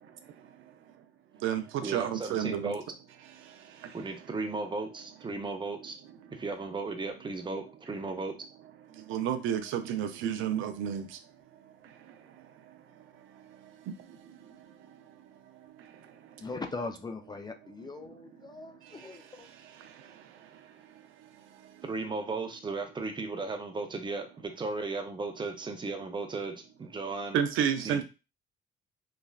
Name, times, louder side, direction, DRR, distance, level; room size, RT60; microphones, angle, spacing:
voice 1, 0.0-0.7 1.4-2.7 3.3-4.0 6.2-6.3 8.9-11.2 11.5-16.5 18.1-18.2 18.6-21.9 27.3-28.0, right 9 dB, 85° right, 0.4 m, -35 dB
voice 2, 1.8-2.8 3.9-5.9 6.3-8.3 21.8-27.4 27.8-28.0, right 3 dB, 25° right, 0.6 m, -35 dB
voice 3, 16.4-19.5, left 3 dB, 20° left, 0.4 m, -40 dB
3.2 x 2.3 x 2.3 m
cardioid pair, 90°, 20 cm